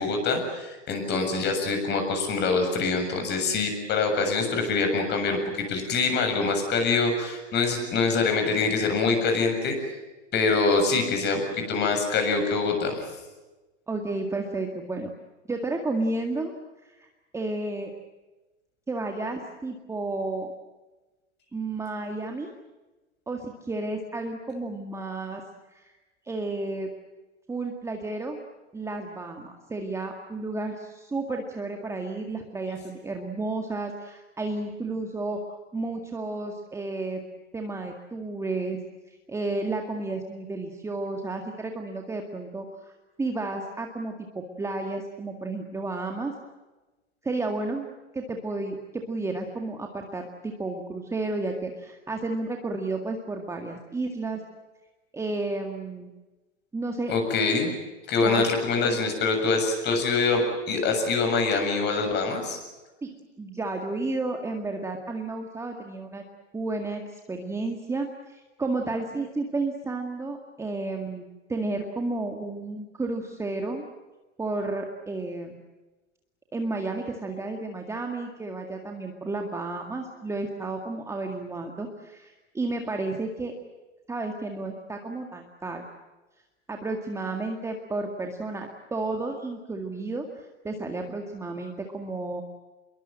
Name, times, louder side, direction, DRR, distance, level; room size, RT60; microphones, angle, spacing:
voice 1, 0.0-9.7 10.3-13.0 57.1-57.7 58.1-62.6, left 4 dB, 30° left, 5 dB, 7.4 m, -25 dB
voice 2, 13.9-15.1 15.5-16.5 16.8-17.9 18.9-20.5 21.5-22.5 23.3-25.4 25.7-25.9 26.3-26.9 27.5-28.4 28.7-37.2 37.5-38.8 39.1-42.9 43.2-46.3 47.2-47.9 48.1-54.4 55.1-56.1 56.7-57.1 58.2-59.0 63.0-66.2 66.5-71.2 71.5-73.9 74.4-75.6 76.5-83.5 84.1-85.8 86.7-92.4, right 2 dB, 10° right, 3 dB, 2.0 m, -32 dB
27.0 x 22.5 x 7.7 m, 1.1 s
hypercardioid pair, 135°, 37 cm